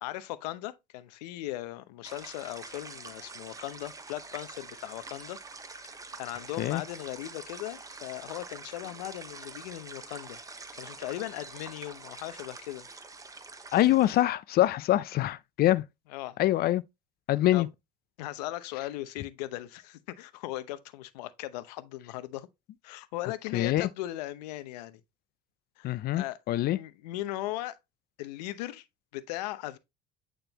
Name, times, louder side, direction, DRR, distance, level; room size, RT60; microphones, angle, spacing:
voice 1, 0.0-5.4 5.9-12.9 16.1-16.4 17.5-17.6 18.2-22.5 22.8-25.0 25.8-26.4 26.7-27.8 28.2-28.8 29.1-29.8, left 15 dB, 80° left, 0.8 m, -38 dB
sound 1, 2.0-14.2, right 3 dB, 15° right, 1.0 m, -46 dB
voice 2, 13.7-15.8 16.4-16.8 17.3-17.7 23.5-23.9 25.8-26.8, left 14 dB, 50° left, 0.5 m, -25 dB
9.0 x 3.8 x 2.9 m
supercardioid pair, 85°, 20 cm